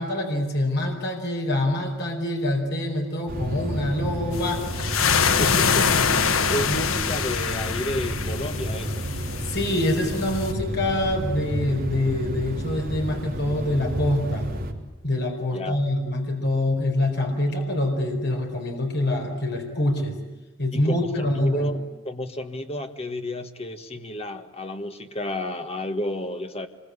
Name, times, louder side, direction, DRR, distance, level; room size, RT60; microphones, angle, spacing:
voice 1, 0.0-4.6 9.4-14.5 15.0-20.2 20.6-21.7, left 1 dB, 55° left, 2 dB, 4.6 m, -25 dB
sound 1, 3.3-14.7, equal, 50° right, 3.4 m, -31 dB
sound 2, 4.3-10.5, left 6 dB, 90° left, 1.0 m, -25 dB
voice 2, 5.4-6.0 6.5-9.1 15.5-15.8 20.7-21.8 22.0-26.7, left 1 dB, 30° left, 7 dB, 1.7 m, -31 dB
25.5 x 23.0 x 9.8 m, 1.1 s
head